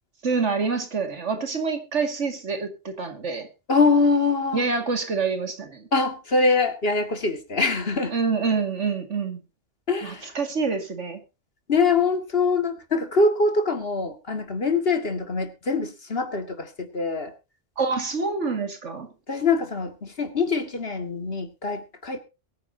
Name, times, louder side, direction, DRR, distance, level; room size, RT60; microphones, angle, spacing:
voice 1, 0.2-3.5 4.5-5.9 8.1-9.4 10.0-11.2 17.8-19.1, right 4 dB, 90° right, 2.5 m, -26 dB
voice 2, 3.7-4.7 5.9-8.1 9.9-10.3 11.7-17.3 19.3-22.2, left 4 dB, 55° left, 2.1 m, -23 dB
22.0 x 9.5 x 2.8 m
omnidirectional pair, 1.2 m